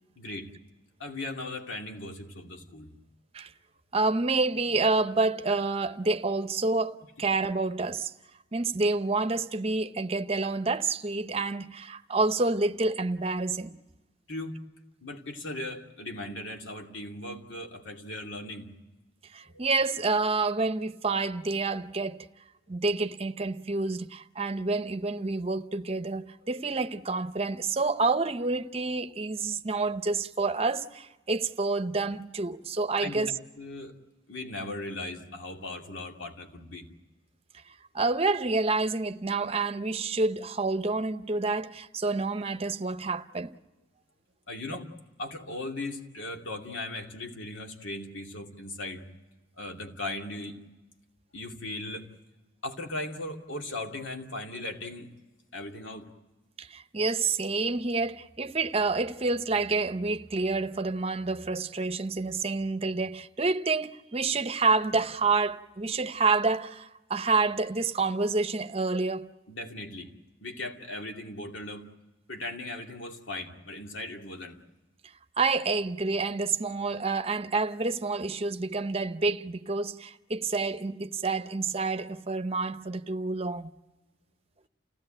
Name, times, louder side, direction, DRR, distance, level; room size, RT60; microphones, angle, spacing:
voice 1, 0.2-0.5 1.0-2.9 14.3-14.6 15.0-18.7 19.5-19.6 26.4-26.5 33.0-33.3 33.6-33.9 34.3-36.9 44.5-44.9 45.2-49.0 49.6-50.6 51.3-52.1 52.6-55.1 55.5-56.1 69.5-70.1 70.4-71.9 72.3-74.6, left 2 dB, 80° left, 2.6 m, -38 dB
voice 2, 3.9-8.1 8.5-13.8 19.3-22.3 22.7-33.3 37.9-43.6 56.6-69.3 75.4-83.7, right 3 dB, 30° right, 0.8 m, -28 dB
29.5 x 17.0 x 8.9 m
head